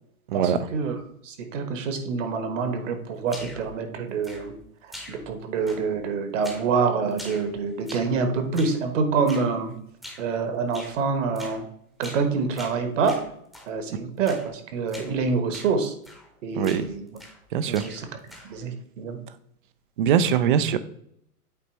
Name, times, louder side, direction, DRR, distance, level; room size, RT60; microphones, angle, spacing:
voice 1, 0.3-1.0 1.2-4.5 5.1-9.8 10.2-11.7 12.0-13.2 13.7-15.9 16.4-17.1 17.7-18.1 18.5-19.2, right 5 dB, 55° right, 7 dB, 1.3 m, -26 dB
sound 1, 3.3-3.7 4.2-4.6 4.9-5.4 5.7-6.1 6.4-6.7 7.1-8.2 8.5-8.8 9.3-9.5 10.0-10.3 10.7-11.0 11.4-11.6 12.0-12.3 12.6-13.7 14.3-14.5 14.9-15.1 15.5-15.8 16.0-16.3 16.6-17.4 17.7-18.6, equal, ahead, 0.8 m, -43 dB
voice 2, 16.6-16.9 17.5-17.8 20.0-20.8, right 8 dB, 35° right, 14 dB, 0.4 m, -22 dB
8.4 x 3.3 x 4.4 m, 0.72 s
hypercardioid pair, 135°, 45 cm